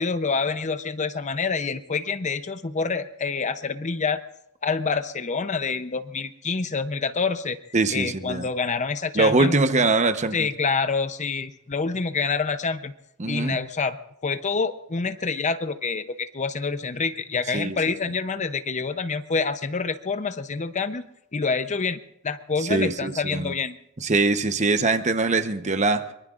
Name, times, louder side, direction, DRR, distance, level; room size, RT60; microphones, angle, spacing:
voice 1, 0.0-4.2 4.6-7.6 7.9-9.8 10.3-12.9 13.3-14.0 14.2-21.0 21.3-23.8, left 4 dB, 35° left, 0.6 m, -27 dB
voice 2, 7.7-8.4 9.1-10.5 13.2-13.6 17.5-17.7 22.7-23.5 24.0-26.1, right 3 dB, 30° right, 0.9 m, -22 dB
24.0 x 23.0 x 2.5 m
head